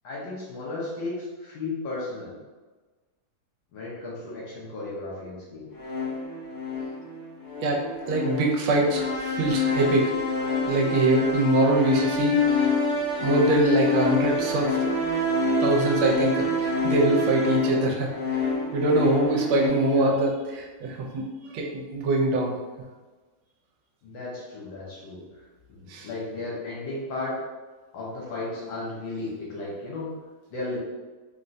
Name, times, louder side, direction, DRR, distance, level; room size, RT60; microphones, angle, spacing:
voice 1, 0.0-2.4 3.7-5.7 19.8-20.1 24.0-25.2 25.7-27.4 27.9-30.1 30.5-30.8, left 2 dB, 70° left, -5 dB, 1.4 m, -34 dB
sound 1, 5.8-19.7, left 3 dB, 85° left, 1.7 m, -26 dB
voice 2, 7.6-10.1 10.7-12.7 13.2-14.8 15.6-18.1 18.7-21.3 21.5-22.5 25.9-26.1, right 2 dB, 80° right, -1 dB, 1.4 m, -23 dB
3.8 x 2.1 x 2.5 m, 1.3 s
omnidirectional pair, 2.3 m